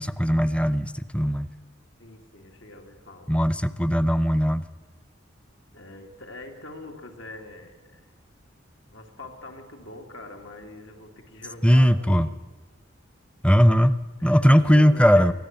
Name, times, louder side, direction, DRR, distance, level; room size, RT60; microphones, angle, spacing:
voice 1, 0.0-1.5 3.3-4.6 11.6-12.3 13.4-15.3, equal, 5° left, 14 dB, 0.6 m, -19 dB
voice 2, 2.0-3.3 5.7-8.1 8.9-12.4 14.2-15.3, left 2 dB, 90° left, 2 dB, 3.1 m, -44 dB
24.0 x 14.5 x 9.2 m, 1.3 s
head